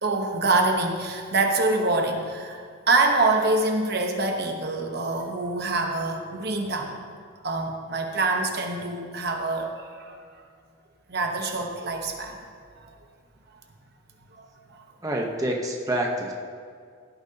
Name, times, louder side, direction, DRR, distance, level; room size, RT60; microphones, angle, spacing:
voice 1, 0.0-7.0 7.4-10.1 11.1-12.5 12.8-12.9 14.4-14.8, right 3 dB, 50° right, 3 dB, 1.0 m, -25 dB
voice 2, 15.0-16.3, right 1 dB, 15° right, 0 dB, 0.9 m, -27 dB
16.5 x 10.5 x 2.8 m, 2.2 s
head